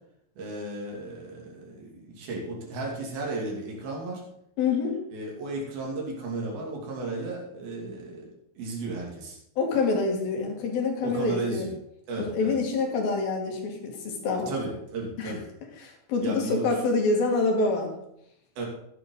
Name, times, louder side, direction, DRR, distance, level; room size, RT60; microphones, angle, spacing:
voice 1, 0.4-4.2 5.1-8.3 8.6-9.4 11.0-11.7 12.1-12.6 14.5-15.4 16.2-16.8 18.6-18.7, right 2 dB, 85° right, -2 dB, 4.5 m, -34 dB
voice 2, 4.6-5.0 9.6-11.7 12.2-14.6 15.2-15.3 15.8-17.9, left 3 dB, 80° left, 1 dB, 3.9 m, -26 dB
14.5 x 10.5 x 3.9 m, 0.76 s
omnidirectional pair, 4.1 m